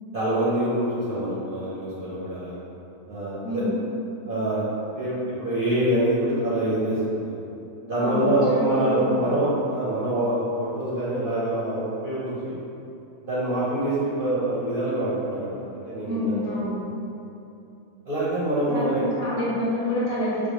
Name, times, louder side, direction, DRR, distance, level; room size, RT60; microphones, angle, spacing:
voice 1, 0.1-2.6 3.1-3.6 4.2-4.7 4.9-7.4 7.8-12.6 13.2-16.6 18.1-19.0, right 1 dB, 50° right, -10 dB, 0.6 m, -25 dB
voice 2, 3.4-3.8 8.0-9.4 16.1-16.8 18.7-20.5, left 1 dB, 60° left, -9 dB, 1.2 m, -28 dB
4.5 x 2.2 x 2.9 m, 2.8 s
omnidirectional pair, 1.6 m